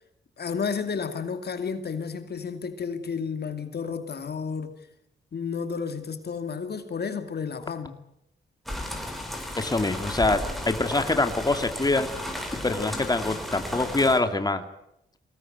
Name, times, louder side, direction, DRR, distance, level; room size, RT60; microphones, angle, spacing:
voice 1, 0.4-4.7 5.3-7.9, left 6 dB, 55° left, 2.5 m, -31 dB
sound 1, 8.7-14.2, left 1 dB, ahead, 6.0 m, -34 dB
voice 2, 9.6-12.1 12.6-14.6, left 2 dB, 20° left, 2.4 m, -24 dB
23.0 x 18.5 x 9.2 m
cardioid pair, 75°, 20 cm